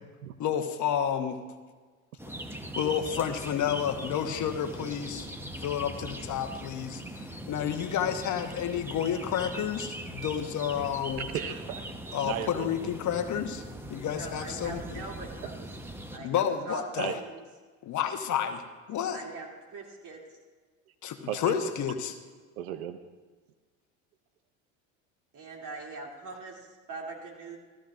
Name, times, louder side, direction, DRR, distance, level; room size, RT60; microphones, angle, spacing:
voice 1, 0.4-1.4 2.8-5.3 5.6-11.3 12.1-13.6 13.9-15.0 16.2-17.2 17.8-18.6 18.9-19.2 21.0-22.1, left 9 dB, 45° left, 7 dB, 1.1 m, -30 dB
sound 1, 2.2-16.2, right 1 dB, 5° right, 1.0 m, -41 dB
voice 2, 11.3-11.9 12.2-12.9 17.0-17.1 21.3-21.8 22.6-23.0, right 10 dB, 85° right, 10 dB, 0.7 m, -35 dB
voice 3, 14.1-15.7 16.1-17.4 19.1-20.4 25.3-27.6, right 3 dB, 45° right, 0 dB, 2.9 m, -42 dB
15.0 x 14.0 x 2.5 m, 1.4 s
hypercardioid pair, 80°, 41 cm